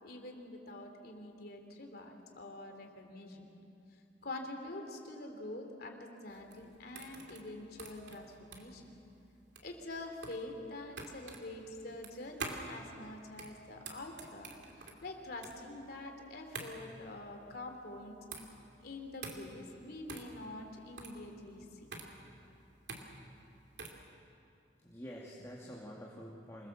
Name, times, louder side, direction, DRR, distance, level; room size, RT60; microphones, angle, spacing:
voice 1, 0.0-3.5 4.2-8.9 9.6-18.2 18.8-21.9, left 2 dB, 60° left, 4 dB, 3.1 m, -46 dB
sound 1, 6.3-24.1, right 3 dB, 70° right, 2.9 m, -48 dB
voice 2, 24.8-26.7, equal, 15° left, -4 dB, 2.4 m, -48 dB
26.5 x 21.0 x 7.4 m, 2.7 s
head